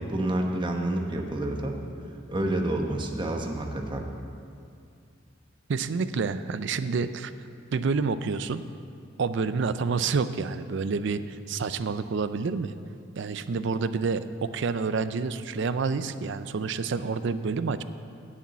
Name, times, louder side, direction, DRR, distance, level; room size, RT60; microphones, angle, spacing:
voice 1, 0.0-1.8 2.3-4.0, right 1 dB, 25° right, 2 dB, 1.0 m, -28 dB
voice 2, 5.7-7.3 7.7-8.6 9.2-12.7 13.2-17.8, right 4 dB, 65° right, 12 dB, 0.4 m, -28 dB
8.4 x 7.1 x 8.4 m, 2.3 s
head